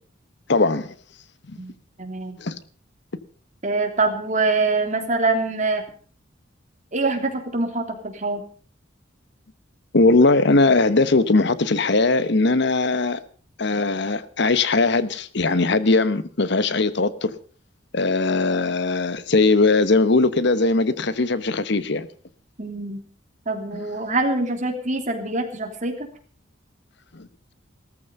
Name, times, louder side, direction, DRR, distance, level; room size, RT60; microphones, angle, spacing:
voice 1, 0.5-0.9 1.5-1.6 2.4-2.6 9.9-13.2 13.6-17.3 17.9-22.1 23.7-23.8 27.1-27.3, left 3 dB, 60° left, 1.0 m, -20 dB
voice 2, 2.0-2.4 3.6-5.8 6.9-8.4 22.6-23.0 23.4-25.9, right 3 dB, 40° right, 3.2 m, -24 dB
17.5 x 14.0 x 5.4 m
head